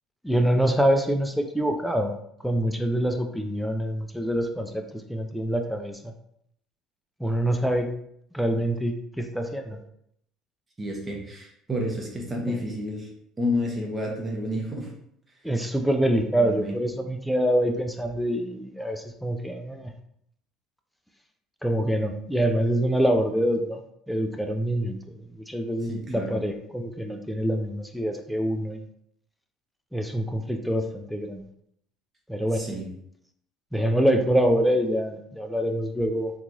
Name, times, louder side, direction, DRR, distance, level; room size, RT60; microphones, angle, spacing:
voice 1, 0.2-2.1 2.4-6.1 7.2-7.9 8.3-9.8 12.5-12.6 15.4-19.9 21.6-23.8 24.1-28.8 29.9-31.5 32.3-32.7 33.7-36.3, equal, ahead, 4 dB, 0.3 m, -25 dB
voice 2, 10.8-13.1 13.4-14.9 16.0-16.7 25.9-26.4 32.5-32.9, left 1 dB, 15° right, -1 dB, 0.8 m, -30 dB
2.9 x 2.4 x 3.9 m, 0.72 s
cardioid pair, 140°, 0 cm